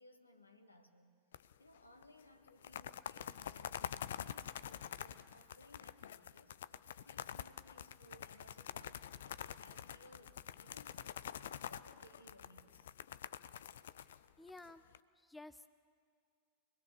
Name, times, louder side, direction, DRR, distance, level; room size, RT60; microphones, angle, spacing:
voice 1, 0.0-11.2 11.6-12.9 14.8-14.9, left 1 dB, 85° left, 6 dB, 1.6 m, -63 dB
sound 1, 1.3-1.8 2.0-2.1 2.5-15.0, left 10 dB, 60° left, 0.5 m, -47 dB
voice 2, 14.4-14.8 15.2-15.7, left 2 dB, 5° left, 12 dB, 0.6 m, -53 dB
25.5 x 20.0 x 6.9 m, 2.2 s
figure-of-eight pair, 90°, 0 cm